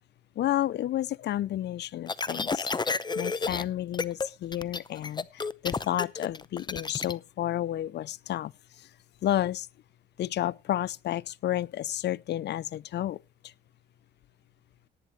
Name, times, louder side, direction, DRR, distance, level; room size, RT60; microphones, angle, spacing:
voice 1, 0.4-8.9 9.2-9.7 10.2-13.5, left 12 dB, 55° left, 0.6 m, -31 dB
sound 1, 2.1-3.6 3.9-4.3 4.5-7.1, left 4 dB, 20° left, 0.8 m, -31 dB
18.0 x 9.7 x 3.2 m
supercardioid pair, 70°, 20 cm